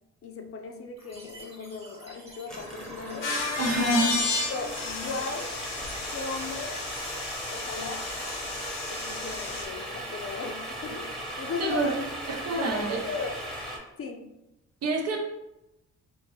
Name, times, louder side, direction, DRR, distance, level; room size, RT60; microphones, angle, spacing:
voice 1, 0.2-3.3 4.5-5.5 6.1-6.8 7.5-8.1 8.9-12.0 12.6-13.3 14.0-14.2, left 4 dB, 50° left, 4 dB, 0.6 m, -37 dB
sound 1, 1.0-8.7, right 1 dB, 20° right, 1.1 m, -49 dB
sound 2, 2.5-13.8, right 1 dB, ahead, 1.0 m, -38 dB
sound 3, 3.2-9.6, left 3 dB, 90° left, 0.9 m, -33 dB
voice 2, 3.6-4.2 11.6-11.9 12.3-13.0 14.8-15.2, right 2 dB, 55° right, 1 dB, 0.8 m, -27 dB
3.5 x 2.7 x 3.1 m, 0.90 s
cardioid pair, 90°, 30 cm